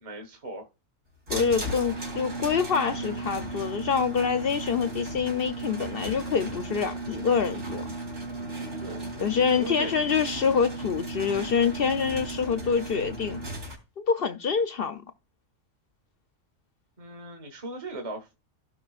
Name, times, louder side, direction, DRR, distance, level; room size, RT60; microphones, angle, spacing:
voice 1, 0.0-0.7 1.9-2.0 8.8-9.0 9.4-9.9 17.0-18.3, right 2 dB, 30° right, 1.3 m, -38 dB
voice 2, 1.3-7.9 9.2-13.4 14.0-15.0, left 6 dB, 60° left, 0.6 m, -26 dB
sound 1, 1.3-13.8, right 2 dB, 70° right, 3.7 m, -35 dB
16.0 x 5.4 x 2.4 m
omnidirectional pair, 1.4 m